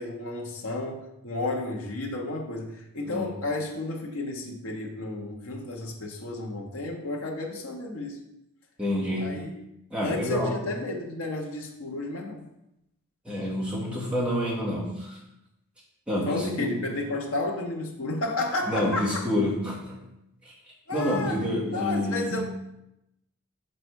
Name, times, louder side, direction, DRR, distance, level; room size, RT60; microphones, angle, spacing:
voice 1, 0.0-8.2 9.2-9.5 10.0-12.4 16.3-19.2 20.9-22.4, left 2 dB, 70° left, 0 dB, 1.0 m, -32 dB
voice 2, 8.8-9.4 9.9-10.6 13.2-15.2 16.1-17.0 18.7-20.0 20.4-20.5 20.9-22.4, left 1 dB, 5° right, -6 dB, 1.7 m, -28 dB
6.7 x 4.2 x 4.6 m, 0.85 s
head